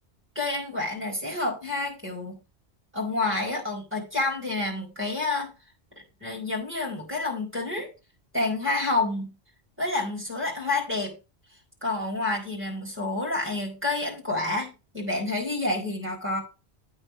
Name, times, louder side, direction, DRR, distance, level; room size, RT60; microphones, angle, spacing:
voice 1, 0.3-2.4 2.9-5.5 6.2-7.9 8.3-9.3 9.8-11.1 11.8-16.4, left 2 dB, 10° right, -2 dB, 4.4 m, -29 dB
8.7 x 4.7 x 7.0 m, 0.29 s
omnidirectional pair, 1.1 m